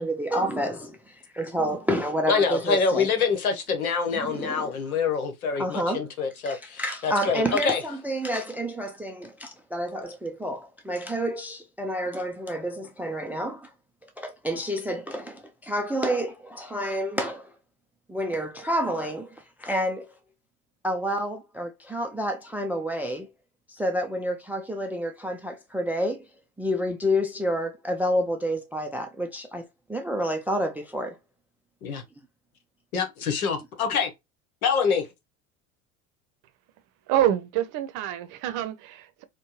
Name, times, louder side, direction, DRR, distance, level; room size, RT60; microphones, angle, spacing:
voice 1, 0.0-3.1 4.1-4.7 5.6-6.1 6.5-13.7 14.2-17.5 18.1-20.1 20.8-23.3 23.7-26.2 26.6-31.2 32.2-32.3, equal, 5° right, 0.3 m, -29 dB
voice 2, 2.3-7.8 31.8-32.0 32.9-34.1 34.6-35.1, left 5 dB, 80° left, 1.0 m, -25 dB
voice 3, 37.1-39.2, right 12 dB, 45° right, 0.7 m, -26 dB
4.4 x 2.2 x 2.9 m
figure-of-eight pair, 70°, 43 cm